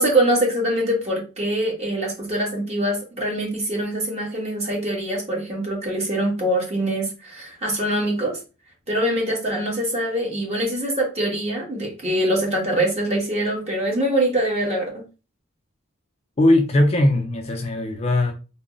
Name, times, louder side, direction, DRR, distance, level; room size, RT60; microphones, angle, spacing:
voice 1, 0.0-8.4 8.9-15.0, right 1 dB, 30° right, 1.2 m, -23 dB
voice 2, 16.4-18.3, left 1 dB, 30° left, 0.4 m, -19 dB
3.7 x 2.0 x 3.8 m
head